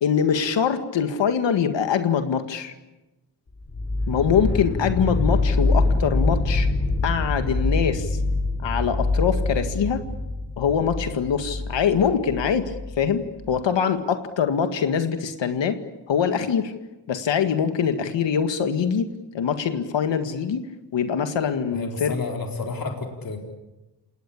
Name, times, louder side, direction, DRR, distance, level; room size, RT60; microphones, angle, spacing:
voice 1, 0.0-2.7 4.1-6.7 7.0-8.2 8.6-10.0 10.6-15.8 16.1-16.7 17.1-19.1 19.3-20.6 20.9-22.2, left 7 dB, 80° left, 8 dB, 2.0 m, -23 dB
sound 1, 3.7-13.6, left 2 dB, 30° left, 3.1 m, -25 dB
voice 2, 21.7-23.4, left 3 dB, 50° left, 2 dB, 4.1 m, -30 dB
28.5 x 19.0 x 8.5 m, 1.0 s
wide cardioid pair, 105°, 43 cm